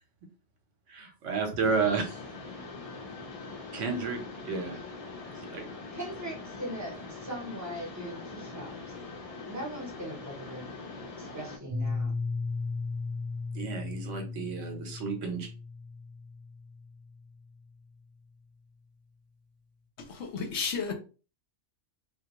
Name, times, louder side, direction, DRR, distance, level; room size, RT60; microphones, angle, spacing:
voice 1, 0.9-2.2 3.7-4.8 5.5-5.7 13.5-15.5, right 5 dB, 75° right, 1.0 m, -31 dB
Mechanisms, 1.6-11.6, left 3 dB, 50° left, 0.4 m, -43 dB
voice 2, 5.9-8.9 9.5-10.7 11.1-12.2, right 1 dB, 15° right, 0.6 m, -40 dB
Piano, 11.7-17.3, left 3 dB, 55° right, 0.4 m, -36 dB
voice 3, 20.2-20.9, left 5 dB, 70° left, 0.8 m, -32 dB
2.3 x 2.2 x 2.9 m
omnidirectional pair, 1.3 m